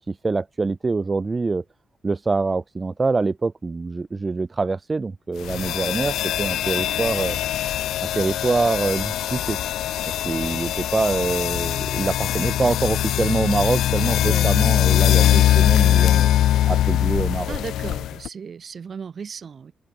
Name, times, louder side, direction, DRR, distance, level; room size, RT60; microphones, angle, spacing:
voice 1, 0.1-1.6 2.0-7.4 8.0-9.6 10.2-16.3 16.7-17.6, right 3 dB, 35° right, 0.3 m, -25 dB
sound 1, 5.4-18.3, left 12 dB, 80° left, 0.6 m, -21 dB
voice 2, 17.5-19.7, right 6 dB, 55° right, 1.3 m, -35 dB
open air
supercardioid pair, 50°, 0 cm